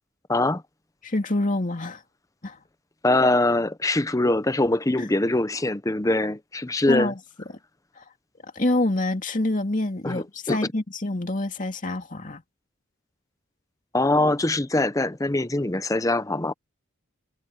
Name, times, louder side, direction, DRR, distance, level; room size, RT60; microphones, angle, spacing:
voice 1, 0.3-0.6 3.0-7.1 10.0-10.7 13.9-16.5, left 2 dB, 15° left, 0.7 m, -23 dB
voice 2, 1.0-2.0 2.4-2.6 5.0-5.1 6.9-7.1 8.0-8.1 8.5-12.4, left 2 dB, 40° left, 2.6 m, -26 dB
head